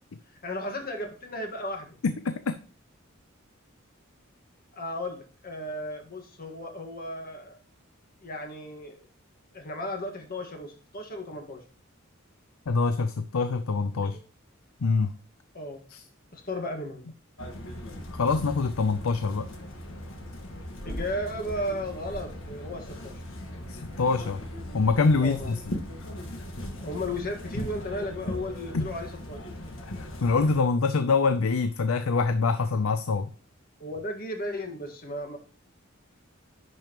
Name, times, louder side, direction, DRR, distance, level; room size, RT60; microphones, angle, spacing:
voice 1, 0.4-2.0 4.7-7.6 8.2-9.0 9.5-11.6 14.0-14.2 15.5-15.8 16.3-17.1 20.8-23.2 25.2-25.5 26.8-29.4 33.8-35.4, left 1 dB, 45° left, 4 dB, 1.7 m, -35 dB
voice 2, 2.0-2.5 12.7-14.2 14.8-15.1 15.9-16.0 18.1-19.5 23.7-24.4 24.7-25.8 28.7-28.9 29.8-33.3, left 4 dB, 85° left, 11 dB, 0.6 m, -25 dB
sound 1, 17.4-30.6, left 1 dB, 70° left, 1.6 m, -38 dB
10.5 x 5.5 x 3.0 m, 0.40 s
head